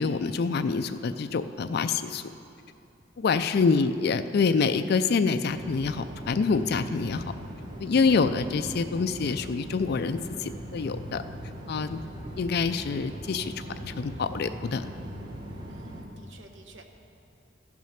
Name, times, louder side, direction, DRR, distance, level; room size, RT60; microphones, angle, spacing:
voice 1, 0.0-2.2 3.2-7.2 7.8-11.2 11.7-12.0 12.4-14.9, left 4 dB, 55° left, 9 dB, 0.4 m, -26 dB
sound 1, 5.5-16.0, equal, 25° right, 1.3 m, -40 dB
voice 2, 15.7-16.9, equal, 70° right, 4 dB, 1.0 m, -50 dB
15.0 x 6.1 x 5.7 m, 2.7 s
head